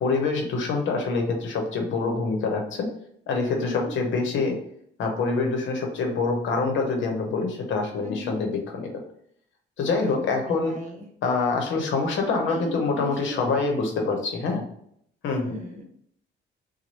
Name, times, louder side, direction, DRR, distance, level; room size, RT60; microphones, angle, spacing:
voice 1, 0.0-2.9 3.3-4.6 5.0-9.0 9.8-10.7 11.2-14.7 15.2-15.4, left 4 dB, 75° left, 3 dB, 0.9 m, -25 dB
voice 2, 3.5-3.9 8.0-8.4 10.0-11.1 12.2-13.7 15.3-15.8, left 1 dB, 35° right, 1 dB, 0.9 m, -37 dB
3.0 x 2.2 x 4.2 m, 0.68 s
cardioid pair, 90°, 20 cm